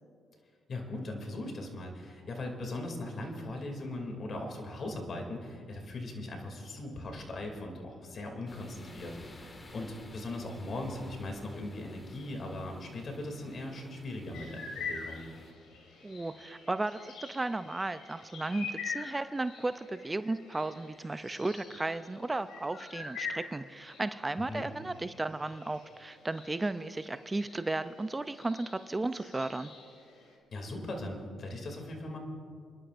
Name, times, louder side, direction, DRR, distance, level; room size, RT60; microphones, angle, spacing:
voice 1, 0.7-15.2 24.4-24.7 30.5-32.2, left 2 dB, 50° left, 2 dB, 2.6 m, -39 dB
sound 1, 8.5-15.5, left 2 dB, 30° left, 1.8 m, -53 dB
sound 2, 14.3-30.4, left 5 dB, 80° left, 2.6 m, -45 dB
voice 2, 16.0-29.7, right 2 dB, 20° right, 11 dB, 0.4 m, -34 dB
29.0 x 11.5 x 2.6 m, 2.3 s
cardioid pair, 75°, 0 cm